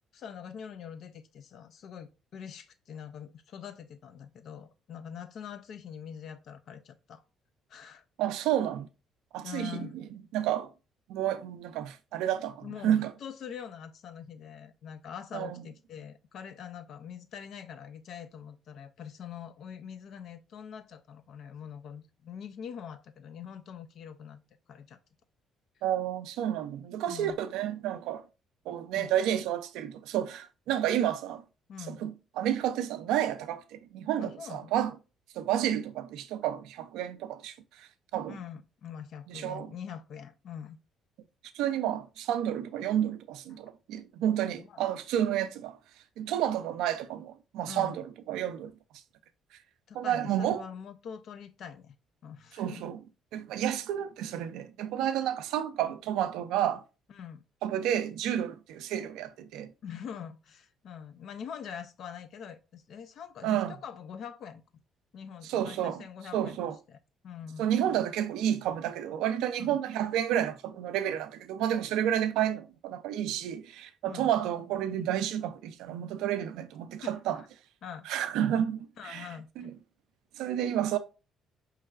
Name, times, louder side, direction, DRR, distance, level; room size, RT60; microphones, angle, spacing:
voice 1, 0.1-7.2 7.7-8.0 9.4-10.0 12.6-24.4 24.7-25.0 27.1-27.4 29.0-29.1 31.7-32.1 34.2-34.7 38.3-40.8 43.5-43.6 44.6-44.9 47.7-48.0 49.9-52.0 52.2-52.8 57.1-57.4 59.8-64.8 65.1-67.0 67.2-67.7 69.6-69.8 74.0-74.3 77.0-77.5 77.8-78.1 79.0-79.7, left 8 dB, 65° left, 0.5 m, -44 dB
voice 2, 8.2-8.9 9.3-9.9 10.3-10.7 11.1-13.1 15.3-15.6 25.8-28.2 28.7-31.4 31.9-34.9 35.4-37.9 38.1-38.4 39.3-39.7 41.5-45.8 46.2-48.7 49.9-50.6 52.6-53.0 53.3-56.8 57.6-59.7 63.4-63.7 65.5-66.0 66.3-66.7 67.6-77.4 78.1-79.3 79.6-79.7 80.4-81.0, right 10 dB, 80° right, 0.4 m, -30 dB
4.5 x 3.2 x 2.4 m
supercardioid pair, 65°, 0 cm